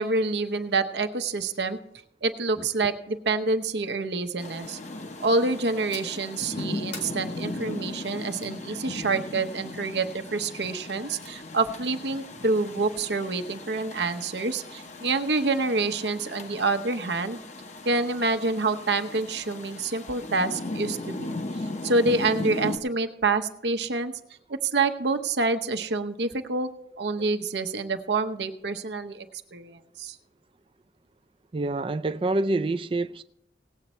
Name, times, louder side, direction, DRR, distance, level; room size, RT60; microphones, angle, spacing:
voice 1, 0.0-1.8 2.2-4.8 5.2-17.4 17.8-21.3 21.8-24.1 24.6-26.7 27.0-29.3 29.5-30.2, right 3 dB, 75° right, 0.9 m, -27 dB
Rain, 4.4-22.8, left 2 dB, 40° left, 0.8 m, -37 dB
sound 1, 5.9-6.3 6.9-8.6 10.7-11.3, left 4 dB, 85° left, 2.6 m, -45 dB
voice 2, 31.5-33.2, right 2 dB, 30° right, 0.4 m, -27 dB
18.0 x 8.1 x 4.3 m
head